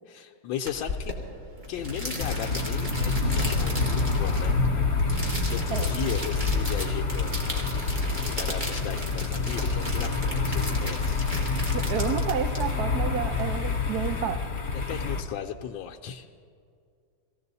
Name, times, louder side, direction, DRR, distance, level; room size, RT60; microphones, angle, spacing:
voice 1, 0.1-1.2 1.7-4.6 5.5-7.4 8.3-11.3 14.7-16.3, left 9 dB, 80° left, 2 dB, 1.4 m, -36 dB
sound 1, 0.7-13.3, equal, 25° right, 2.2 m, -36 dB
sound 2, 1.8-14.2, left 1 dB, 40° right, 1.4 m, -34 dB
sound 3, 2.2-15.2, left 4 dB, 45° left, 1.3 m, -28 dB
voice 2, 11.7-14.4, right 8 dB, 65° right, 8 dB, 1.1 m, -30 dB
21.0 x 16.0 x 4.1 m, 2.3 s
omnidirectional pair, 2.1 m